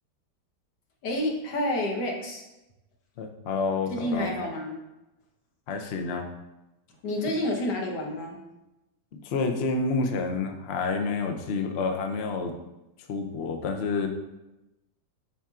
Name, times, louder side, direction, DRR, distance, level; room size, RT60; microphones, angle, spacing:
voice 1, 1.0-2.4 3.9-4.8 7.0-8.4, left 1 dB, 80° left, 0 dB, 1.7 m, -29 dB
voice 2, 3.2-4.3 5.7-6.3 9.2-12.5 13.1-14.1, left 4 dB, 60° left, 4 dB, 0.7 m, -29 dB
11.0 x 4.3 x 2.4 m, 0.97 s
omnidirectional pair, 1.8 m